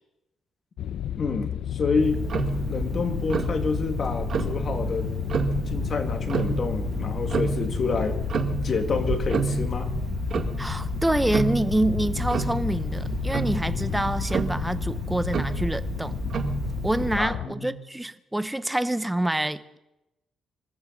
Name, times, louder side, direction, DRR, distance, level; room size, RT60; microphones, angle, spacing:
sound 1, 0.8-17.5, left 11 dB, 75° left, 0.7 m, -32 dB
voice 1, 1.2-2.2 2.7-5.1 5.7-8.2 8.6-9.9 17.2-17.7, left 4 dB, 40° left, 2.1 m, -28 dB
Tick-tock, 2.0-17.2, right 4 dB, 50° right, 1.8 m, -30 dB
voice 2, 10.6-16.1 16.8-19.8, right 1 dB, 5° right, 0.8 m, -27 dB
24.5 x 14.0 x 4.0 m
cardioid pair, 115°, 0 cm